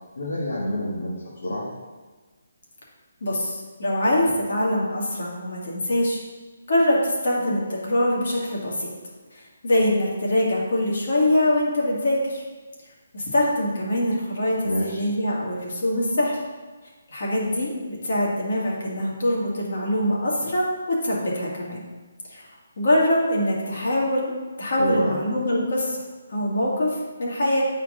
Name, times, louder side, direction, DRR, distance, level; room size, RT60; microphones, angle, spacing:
voice 1, 0.2-1.7 14.6-15.0 24.8-25.2, left 1 dB, 90° left, -7 dB, 1.7 m, -28 dB
voice 2, 3.2-6.2 6.7-8.9 9.3-12.4 13.1-16.4 17.1-21.8 22.3-22.5 22.8-24.3 24.6-26.0 26.3-27.6, left 1 dB, 55° left, -4 dB, 2.1 m, -23 dB
9.1 x 4.4 x 3.8 m, 1.3 s
hypercardioid pair, 175°, 0 cm